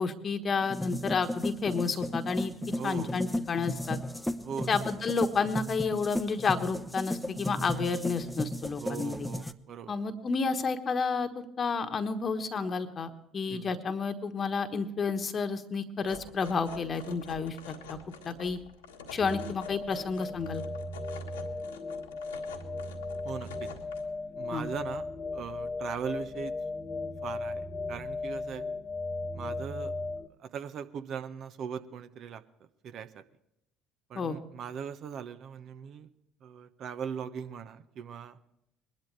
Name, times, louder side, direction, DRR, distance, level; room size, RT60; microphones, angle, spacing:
voice 1, 0.0-2.5 2.8-4.0 4.7-9.3 9.9-18.0 18.2-18.6 19.1-20.6 24.5-24.7 34.1-34.4, left 5 dB, 40° left, 7 dB, 1.3 m, -31 dB
sound 1, 0.6-9.5, left 1 dB, 5° left, 0.8 m, -35 dB
voice 2, 2.8-3.1 4.4-4.7 8.8-9.9 13.5-13.7 23.2-23.7 24.4-25.1 25.3-26.5 27.2-28.6 29.3-29.9 30.4-32.4 32.8-33.2 34.1-36.1 36.4-38.4, right 7 dB, 55° right, 11 dB, 1.0 m, -39 dB
sound 2, 16.0-24.0, left 5 dB, 85° left, 1.6 m, -48 dB
sound 3, 19.2-30.3, left 3 dB, 20° left, 1.2 m, -37 dB
22.0 x 12.0 x 3.3 m, 0.80 s
hypercardioid pair, 55°, 0 cm